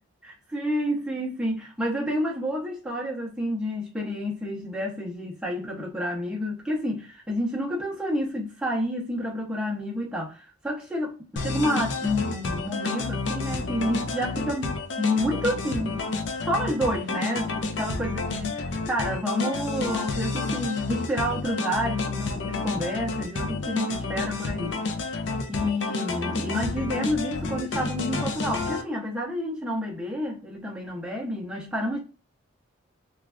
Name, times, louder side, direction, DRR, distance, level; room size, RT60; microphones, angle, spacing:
voice 1, 0.2-16.0 16.4-24.7 25.5-32.0, equal, 5° right, 0.6 m, -29 dB
sound 1, 11.4-28.8, left 3 dB, 60° left, 0.5 m, -30 dB
3.1 x 2.3 x 2.3 m
head